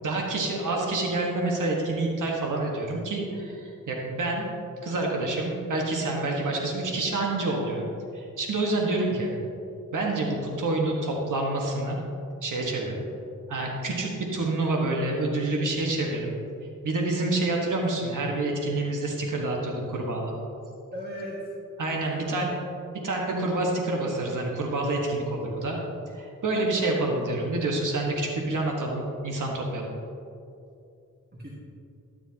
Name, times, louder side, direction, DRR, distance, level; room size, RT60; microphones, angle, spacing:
voice 1, 0.0-4.4 4.8-7.8 8.1-9.3 9.9-12.0 12.4-13.0 13.5-16.4 16.8-20.3 21.8-22.6 23.0-25.8 26.1-29.9, right 2 dB, 75° right, -1 dB, 1.4 m, -28 dB
voice 2, 20.9-21.4 22.1-22.5 27.2-27.4 31.3-31.5, equal, 30° right, -5 dB, 1.7 m, -37 dB
12.5 x 10.0 x 2.9 m, 2.6 s
cardioid pair, 50°, 32 cm